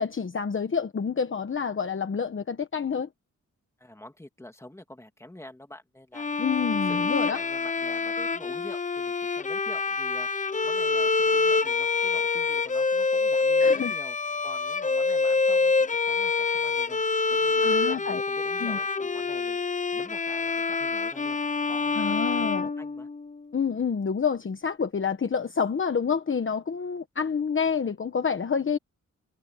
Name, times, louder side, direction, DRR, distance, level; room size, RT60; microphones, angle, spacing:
voice 1, 0.0-3.1 6.4-7.4 13.6-13.9 17.6-18.2 18.6-18.8 21.9-22.7 23.5-28.8, left 6 dB, 40° left, 1.1 m, -28 dB
voice 2, 3.8-6.4 6.7-14.2 14.4-21.4 21.6-23.1, left 1 dB, 10° left, 2.7 m, -47 dB
Bowed string instrument, 6.2-23.4, left 4 dB, 25° left, 0.6 m, -26 dB
wide cardioid pair, 135°, 31 cm